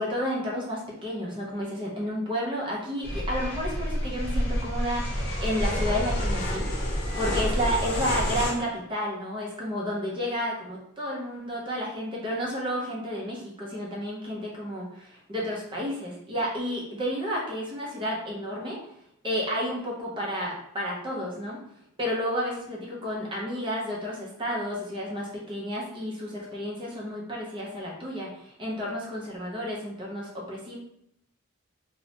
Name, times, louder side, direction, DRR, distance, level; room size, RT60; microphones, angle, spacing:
voice 1, 0.0-6.7 7.2-18.8 19.2-21.6 22.0-30.8, equal, 25° right, -4 dB, 0.5 m, -31 dB
sound 1, 3.0-8.5, equal, 55° left, 0.7 m, -28 dB
3.0 x 2.0 x 2.7 m, 0.75 s
head